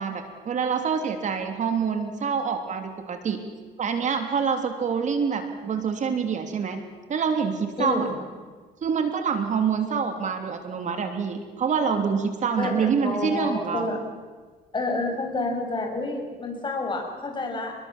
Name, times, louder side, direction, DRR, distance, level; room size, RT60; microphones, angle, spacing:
voice 1, 0.0-3.4 3.8-6.8 7.1-8.1 8.8-13.9, right 6 dB, 45° right, 6 dB, 3.1 m, -26 dB
voice 2, 7.8-8.1 12.6-14.0 14.7-17.7, left 2 dB, 30° left, 4 dB, 6.6 m, -29 dB
30.0 x 21.0 x 7.4 m, 1.4 s
cardioid pair, 110°, 17 cm